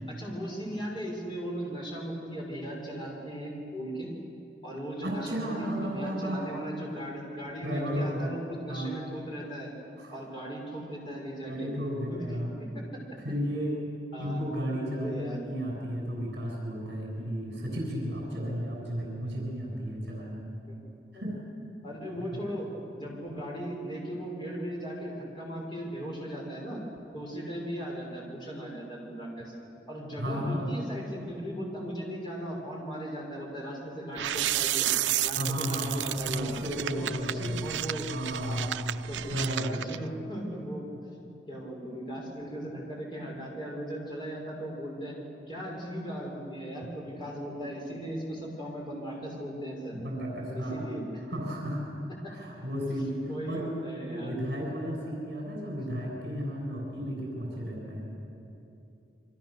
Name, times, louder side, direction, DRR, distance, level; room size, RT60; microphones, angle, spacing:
voice 1, 0.2-4.1 4.6-9.7 10.1-11.7 12.1-12.7 14.1-14.4 14.9-15.4 20.7-20.8 21.8-22.7 22.9-26.8 27.1-29.5 29.9-34.8 35.2-36.5 36.9-38.1 38.4-38.7 39.1-40.8 41.5-45.2 45.5-50.0 50.5-51.0 51.3-51.4 52.2-52.3 53.3-54.4, equal, 25° left, -3 dB, 6.2 m, -37 dB
voice 2, 5.0-6.5 7.6-8.3 8.7-8.9 10.0-10.2 11.4-12.5 13.2-13.8 14.2-20.5 21.1-21.4 22.2-22.3 30.2-30.7 35.3-37.6 38.1-38.9 39.3-39.8 49.9-50.9 51.3-53.8 54.1-58.1, equal, 60° right, -2 dB, 6.8 m, -33 dB
sound 1, 34.2-40.0, right 12 dB, 85° right, 0.5 m, -32 dB
29.0 x 23.5 x 6.9 m, 2.9 s
head